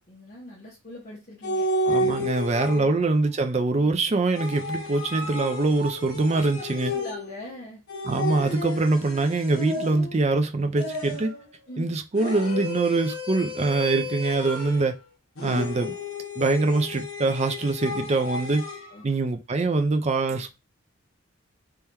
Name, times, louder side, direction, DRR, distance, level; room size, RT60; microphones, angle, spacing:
voice 1, 0.0-1.7 6.2-7.8 9.7-9.9 11.7-11.9 18.9-19.0, left 1 dB, 40° left, 1.1 m, -42 dB
sound 1, 1.4-3.1 4.3-7.4 7.9-10.2 10.8-11.5 12.1-14.9 15.4-18.9, left 1 dB, 90° left, 1.0 m, -32 dB
voice 2, 1.9-6.9 8.0-11.3 11.8-14.9 15.4-15.9 16.4-18.6 19.0-20.6, right 3 dB, 30° right, 0.4 m, -24 dB
3.5 x 3.3 x 2.9 m
head